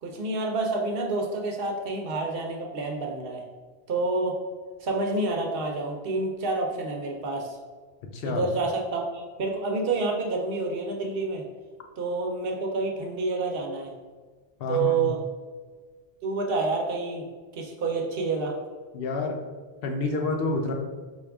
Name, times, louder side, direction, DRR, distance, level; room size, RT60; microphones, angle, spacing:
voice 1, 0.0-3.5 3.9-4.4 4.8-7.6 8.2-11.5 12.0-13.9 14.7-15.2 16.2-17.3 17.5-18.6, right 3 dB, 65° right, 1 dB, 0.8 m, -28 dB
voice 2, 8.1-8.5 14.6-15.0 18.9-19.4 19.8-20.7, left 3 dB, 70° left, 3 dB, 0.8 m, -28 dB
4.3 x 2.3 x 3.4 m, 1.4 s
omnidirectional pair, 1.0 m